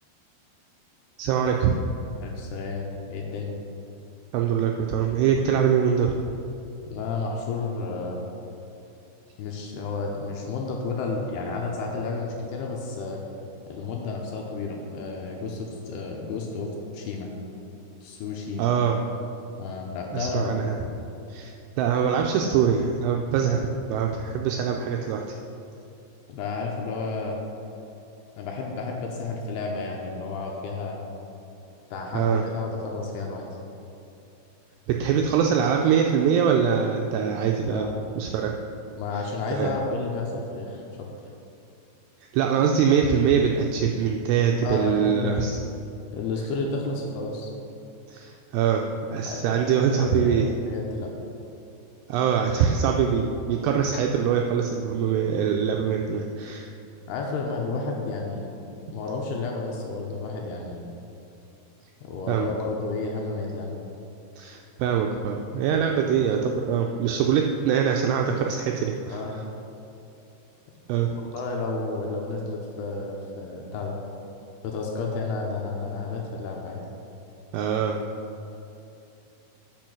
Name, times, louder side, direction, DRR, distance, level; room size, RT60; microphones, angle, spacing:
voice 1, 1.2-1.8 4.3-6.1 18.6-19.0 20.1-20.8 21.3-25.4 32.1-32.4 34.9-37.9 38.2-38.6 39.5-39.7 42.3-45.6 48.1-48.9 49.1-50.5 52.1-56.7 62.3-62.5 64.4-69.2 70.9-71.1 77.5-78.0, right 7 dB, 85° right, 2 dB, 2.4 m, -23 dB
voice 2, 2.2-3.5 6.9-8.2 9.4-13.2 13.7-17.3 18.0-18.7 19.6-20.7 23.4-23.6 26.3-27.4 28.4-31.0 31.9-33.4 37.7-37.9 38.9-41.1 44.6-45.6 46.1-47.5 49.3-51.1 57.1-58.5 58.9-60.8 62.0-63.7 69.1-69.4 70.9-74.0 74.6-76.8, left 3 dB, 80° left, 0 dB, 2.5 m, -31 dB
9.0 x 5.6 x 6.2 m, 2.8 s
omnidirectional pair, 5.2 m